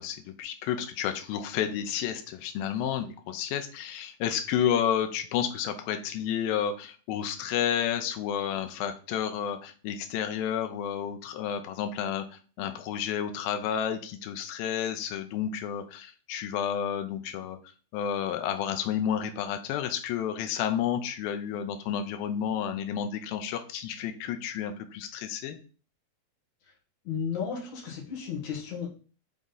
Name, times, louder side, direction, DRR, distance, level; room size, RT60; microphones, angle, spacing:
voice 1, 0.0-17.6 17.9-25.6, left 9 dB, 85° left, 7 dB, 2.1 m, -31 dB
voice 2, 27.1-28.9, left 6 dB, 60° left, -1 dB, 2.5 m, -33 dB
7.1 x 3.7 x 3.9 m, 0.39 s
omnidirectional pair, 4.8 m